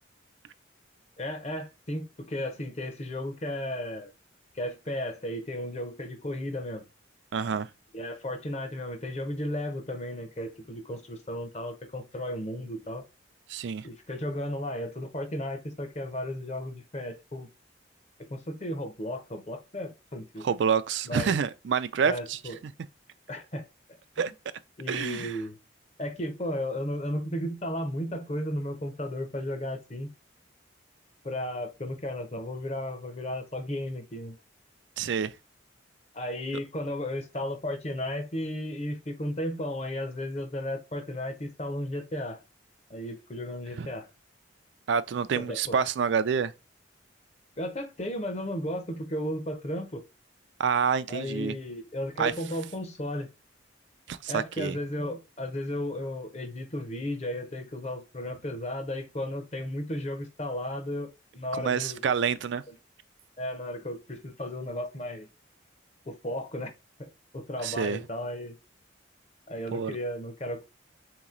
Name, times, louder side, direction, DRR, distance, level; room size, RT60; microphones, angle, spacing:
voice 1, 1.2-4.1 4.5-6.8 7.9-13.0 13.8-17.5 18.3-20.5 21.1-21.3 22.0-22.6 23.3-23.6 24.8-25.6 26.0-30.1 31.2-34.4 36.1-42.4 42.9-44.1 45.3-45.8 47.6-50.0 51.1-53.3 54.3-61.1 61.3-62.0 62.7-62.8 63.4-65.3 66.1-66.7 67.0-68.6 69.5-70.6, left 1 dB, 35° left, 0.8 m, -34 dB
voice 2, 7.3-7.7 13.5-13.9 20.4-22.4 24.2-24.3 24.9-25.4 35.0-35.3 43.8-43.9 44.9-46.5 50.6-51.5 52.2-52.3 54.1-54.8 61.5-62.6 67.6-68.0 69.7-70.0, right 6 dB, 60° right, 0.4 m, -27 dB
3.9 x 3.0 x 3.7 m
head